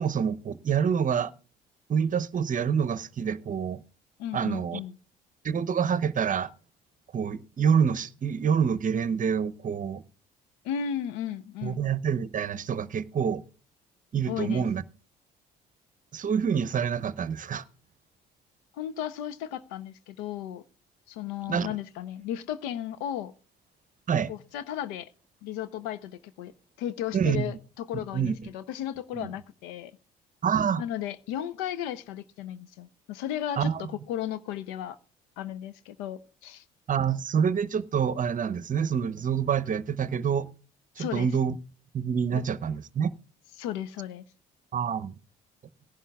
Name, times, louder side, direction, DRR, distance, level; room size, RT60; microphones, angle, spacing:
voice 1, 0.0-1.3 1.9-3.8 4.3-4.8 5.4-6.5 7.1-10.0 11.6-13.4 14.1-14.8 16.1-17.6 21.5-21.7 24.1-24.3 27.1-27.6 28.1-28.3 29.1-29.3 30.4-30.8 33.6-33.9 36.9-40.5 41.0-41.6 41.9-43.1 44.7-45.1, right 7 dB, 40° right, 0.8 m, -27 dB
voice 2, 4.2-5.0 10.6-11.8 14.3-14.7 18.8-20.6 21.1-23.3 24.3-25.1 25.4-26.5 26.8-29.9 30.8-33.7 34.1-35.0 35.4-36.6 41.0-41.3 42.3-42.4 43.6-44.2, left 10 dB, 80° left, 0.7 m, -35 dB
18.5 x 11.0 x 2.3 m
hypercardioid pair, 60°, 21 cm